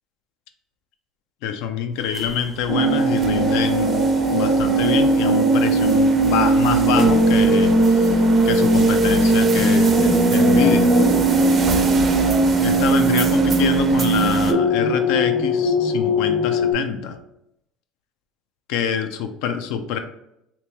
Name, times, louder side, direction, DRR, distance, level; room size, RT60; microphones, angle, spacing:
voice 1, 1.4-10.9 12.6-17.2 18.7-20.0, left 8 dB, 75° left, 8 dB, 0.4 m, -26 dB
sound 1, 2.0-14.5, right 4 dB, 35° right, 0.4 m, -31 dB
sound 2, 2.7-16.7, right 2 dB, 35° left, 0.8 m, -18 dB
2.9 x 2.9 x 3.4 m, 0.81 s
supercardioid pair, 110°, 0 cm